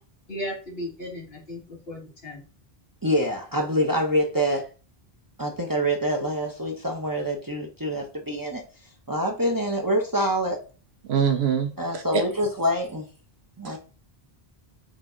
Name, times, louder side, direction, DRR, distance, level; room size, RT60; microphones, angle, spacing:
voice 1, 0.3-2.4, equal, 70° left, 0 dB, 2.0 m, -35 dB
voice 2, 3.0-4.7 5.4-8.6 9.1-10.6 11.8-13.1 13.6-13.8, equal, 25° right, 0 dB, 0.6 m, -26 dB
voice 3, 11.0-12.2 13.6-13.8, right 7 dB, 90° right, 6 dB, 1.1 m, -24 dB
4.6 x 2.6 x 3.7 m, 0.35 s
omnidirectional pair, 1.0 m